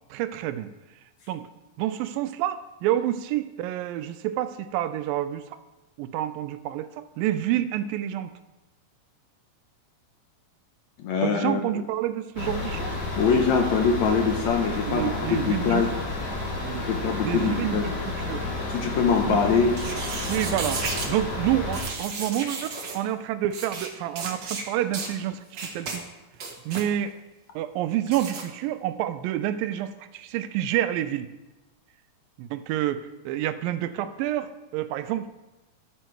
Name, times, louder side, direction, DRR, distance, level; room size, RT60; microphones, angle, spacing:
voice 1, 0.1-0.7 1.3-1.5 1.8-5.6 6.0-8.3 11.2-13.0 14.9-15.9 16.6-16.9 17.2-17.9 18.3-18.4 19.3-19.4 20.3-26.0 26.7-27.2 27.6-31.3 32.4-35.3, right 12 dB, 90° right, 11 dB, 2.4 m, -28 dB
voice 2, 11.0-11.6 13.2-15.9 16.9-17.9 18.7-19.7, left 5 dB, 70° left, 2 dB, 1.9 m, -23 dB
sound 1, 12.4-21.8, left 2 dB, 45° left, 1.6 m, -31 dB
sound 2, 19.7-21.1 21.7-23.0 23.5-23.9 24.2-24.6 24.9-25.1 25.5-26.0 26.3-26.9 28.1-28.4, right 4 dB, 65° right, 1.1 m, -33 dB
12.0 x 7.3 x 4.6 m, 1.0 s
omnidirectional pair, 4.0 m